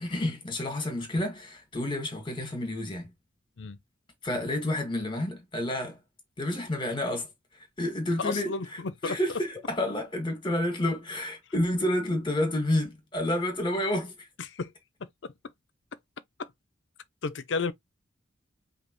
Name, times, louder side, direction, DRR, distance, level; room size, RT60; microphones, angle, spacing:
voice 1, 0.0-3.1 4.2-6.0 6.4-7.3 7.5-8.5 9.0-14.3, left 1 dB, 25° left, 1.9 m, -29 dB
voice 2, 8.2-9.2 14.4-14.7 15.0-15.1 16.4-16.5 17.2-17.7, left 4 dB, 75° left, 0.6 m, -32 dB
5.2 x 2.8 x 3.1 m
head